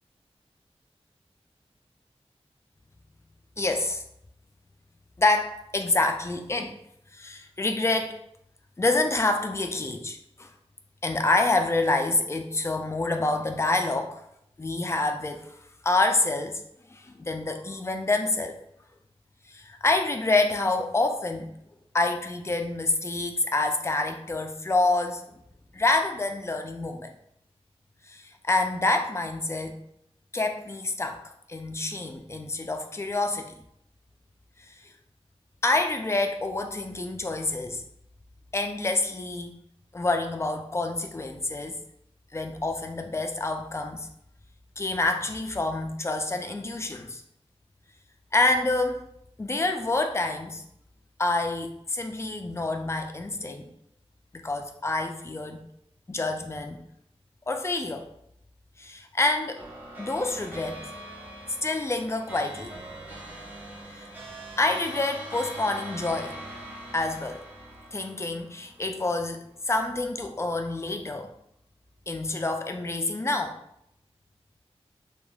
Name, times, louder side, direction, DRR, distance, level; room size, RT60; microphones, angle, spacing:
voice 1, 3.6-4.0 5.2-6.8 7.1-8.2 8.8-10.5 11.0-14.2 14.6-15.5 15.8-16.6 16.9-18.5 19.5-21.5 21.9-25.2 25.7-27.1 28.1-29.8 30.3-31.2 31.5-33.5 35.6-37.8 38.5-39.5 39.9-41.8 42.3-44.1 44.8-47.2 48.3-49.0 49.4-50.6 51.2-53.7 54.4-55.6 56.1-56.8 57.5-58.1 58.8-59.6 60.0-60.9 61.6-62.8 63.9-64.1 64.6-66.4 66.9-67.4 67.9-71.3 72.1-73.6, left 2 dB, 25° left, 5 dB, 0.3 m, -27 dB
sound 1, 59.6-69.2, right 1 dB, 15° right, 0.8 m, -42 dB
3.2 x 2.3 x 2.3 m, 0.75 s
wide cardioid pair, 75°, 11 cm